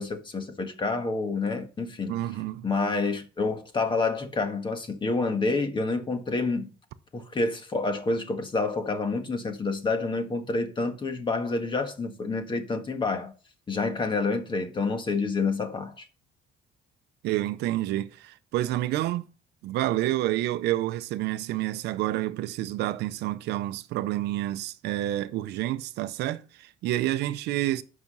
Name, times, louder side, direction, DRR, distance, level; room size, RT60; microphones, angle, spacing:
voice 1, 0.0-2.2 2.6-6.7 7.1-13.3 13.7-16.1, left 3 dB, 30° left, 1.7 m, -28 dB
voice 2, 2.1-2.7 17.2-19.3 19.6-27.8, right 15 dB, 85° right, 0.7 m, -29 dB
9.4 x 6.0 x 5.5 m
cardioid pair, 110°, 17 cm